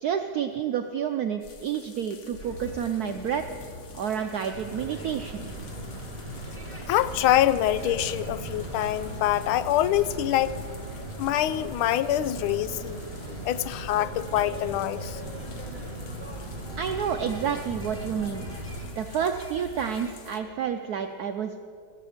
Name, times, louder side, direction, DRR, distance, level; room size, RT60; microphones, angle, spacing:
voice 1, 0.0-3.4 3.9-5.5 16.8-18.4 18.9-21.6, right 8 dB, 75° right, 6 dB, 0.8 m, -29 dB
sound 1, 1.4-20.4, left 4 dB, 50° left, 1.0 m, -48 dB
sound 2, 2.4-20.1, right 1 dB, 5° left, 1.4 m, -48 dB
sound 3, 4.5-18.9, right 1 dB, 30° right, 3.2 m, -38 dB
voice 2, 6.9-10.6 11.2-13.0 13.3-15.2 16.7-16.8, left 12 dB, 85° left, 15 dB, 1.4 m, -25 dB
16.5 x 13.5 x 5.0 m, 2.2 s
omnidirectional pair, 2.3 m